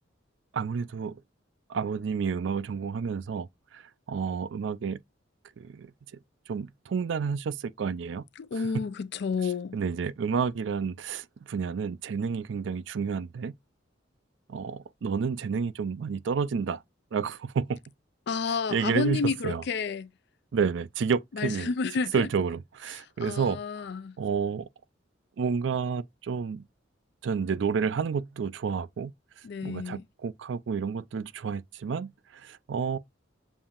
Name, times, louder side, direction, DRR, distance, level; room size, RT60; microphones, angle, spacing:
voice 1, 0.5-1.2 1.7-3.8 4.1-5.0 5.6-5.9 6.5-8.2 9.7-13.5 14.5-16.8 17.1-17.8 18.7-19.2 19.4-19.6 20.5-21.7 22.1-23.9 24.2-24.7 25.4-26.6 27.2-29.1 29.6-33.0, right 6 dB, 70° right, 0.4 m, -30 dB
voice 2, 8.4-9.8 18.3-20.1 21.3-22.3 23.2-24.2 29.4-30.0, left 5 dB, 60° left, 0.4 m, -30 dB
7.1 x 2.6 x 2.4 m
head